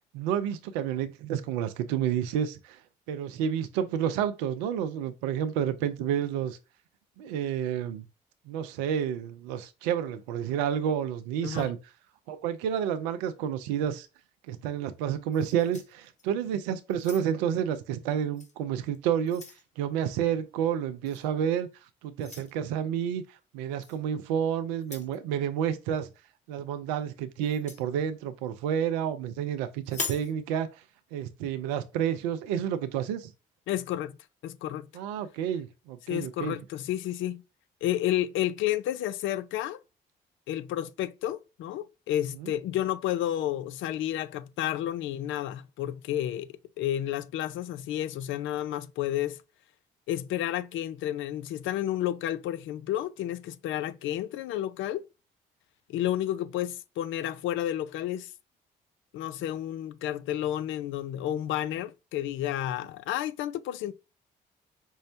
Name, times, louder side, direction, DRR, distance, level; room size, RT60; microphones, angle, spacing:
voice 1, 0.1-2.8 3.1-6.6 7.2-8.0 8.5-11.8 12.3-14.1 14.5-19.4 19.8-21.7 22.0-23.2 23.5-26.1 26.5-30.7 31.1-33.3 34.9-36.6 42.4-42.5, right 9 dB, 90° right, 0.5 m, -30 dB
sound 1, 15.3-16.5 16.9-17.5 18.3-18.5 18.9-19.7 21.1-21.3 22.2-22.5 23.8-24.0 24.8-25.2 27.4-27.9 29.8-30.3, left 3 dB, 35° left, 1.3 m, -40 dB
voice 2, 33.7-34.2 34.4-34.9 36.1-37.4 37.8-39.8 40.5-49.4 50.1-55.0 55.9-58.3 59.1-63.9, left 12 dB, 70° left, 0.4 m, -31 dB
5.4 x 2.1 x 2.6 m
hypercardioid pair, 50°, 21 cm